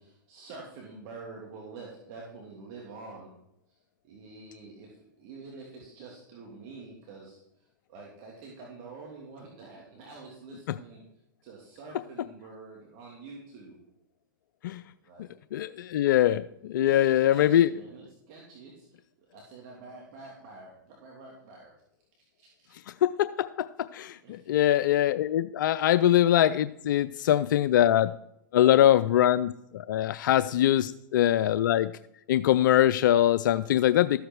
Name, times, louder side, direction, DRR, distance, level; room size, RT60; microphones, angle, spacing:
voice 1, 0.0-3.3 3.7-3.8 4.0-11.0 11.4-13.8 15.0-15.4 16.8-21.7 22.2-22.7 24.2-24.4, right 3 dB, 50° right, -2 dB, 3.0 m, -47 dB
voice 2, 15.5-17.7 23.0-24.2 24.5-28.1 28.5-31.9 32.3-34.2, left 12 dB, 70° left, 14 dB, 0.4 m, -23 dB
13.5 x 8.1 x 4.7 m, 0.78 s
hypercardioid pair, 115°, 11 cm